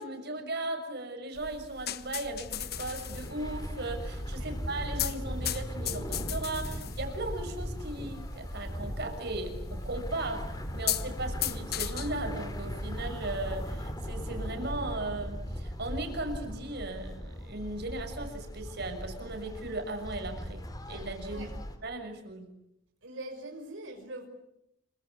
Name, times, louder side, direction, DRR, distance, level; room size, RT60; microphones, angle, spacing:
voice 1, 0.0-21.5 21.8-22.5, right 2 dB, 60° right, 5 dB, 6.5 m, -37 dB
sound 1, 1.4-13.8, left 11 dB, 55° left, 1.2 m, -39 dB
sound 2, 2.3-21.8, equal, 20° left, 3.6 m, -38 dB
voice 2, 23.0-24.3, right 1 dB, 85° right, 3 dB, 5.5 m, -42 dB
28.0 x 24.5 x 8.4 m, 0.80 s
head